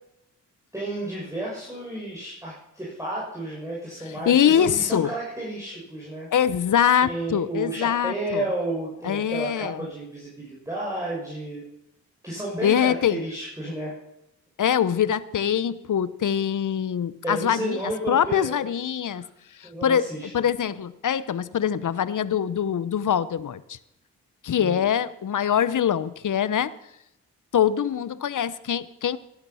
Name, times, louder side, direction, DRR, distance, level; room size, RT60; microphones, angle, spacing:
voice 1, 0.7-6.3 7.0-11.6 12.2-13.9 17.2-18.7 19.1-19.3 19.6-20.3 24.6-24.8, right 1 dB, 10° right, -5 dB, 6.0 m, -32 dB
voice 2, 4.3-5.1 6.3-8.4 9.0-9.8 12.6-13.2 14.6-17.8 18.1-19.2 19.6-23.8 24.4-26.7 27.5-29.2, left 9 dB, 55° left, 17 dB, 0.9 m, -23 dB
17.5 x 12.0 x 5.7 m, 0.83 s
supercardioid pair, 50°, 36 cm